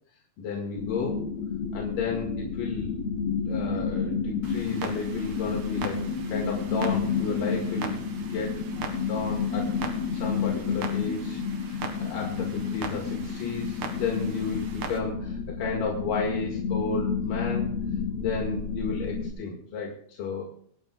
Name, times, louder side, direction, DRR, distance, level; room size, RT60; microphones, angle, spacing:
voice 1, 0.4-1.2 1.7-3.0 3.4-9.7 10.1-17.7 18.2-20.4, left 4 dB, 85° left, -1 dB, 3.5 m, -33 dB
sound 1, 0.8-19.3, left 5 dB, 65° left, 2.4 m, -30 dB
Clock, 4.4-15.0, right 5 dB, 70° right, 3.3 m, -41 dB
26.0 x 10.5 x 2.4 m, 0.62 s
omnidirectional pair, 3.7 m